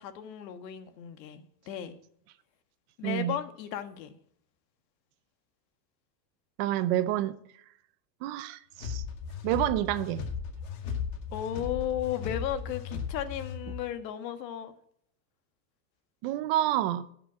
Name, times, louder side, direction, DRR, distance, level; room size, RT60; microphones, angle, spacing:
voice 1, 0.0-1.9 3.0-4.1 11.3-14.7, left 11 dB, 80° left, 1.5 m, -35 dB
voice 2, 3.0-3.4 6.6-7.4 8.2-9.0 9.4-10.3 16.2-17.1, right 13 dB, 40° right, 0.5 m, -28 dB
sound 1, 8.8-13.9, left 6 dB, 60° left, 2.1 m, -36 dB
11.0 x 5.9 x 7.3 m
supercardioid pair, 160°, 50 cm